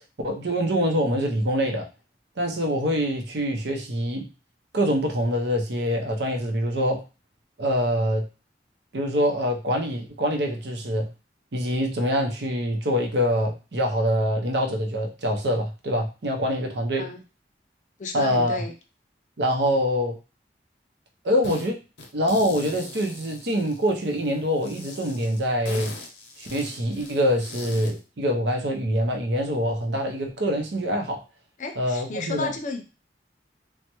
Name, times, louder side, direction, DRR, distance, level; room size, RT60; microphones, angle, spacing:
voice 1, 0.2-1.9 2.4-4.3 4.7-7.0 7.6-8.2 8.9-11.1 11.5-17.1 18.1-18.6 19.4-20.2 21.2-21.8 22.1-25.9 26.4-31.2 31.8-32.5, equal, 80° right, 3 dB, 0.7 m, -25 dB
voice 2, 18.0-18.7 31.6-32.8, left 3 dB, 45° left, 5 dB, 0.5 m, -32 dB
sound 1, 21.4-21.7 22.0-24.1 24.6-28.0, left 3 dB, 85° left, 0.6 m, -41 dB
3.3 x 2.1 x 2.9 m, 0.31 s
head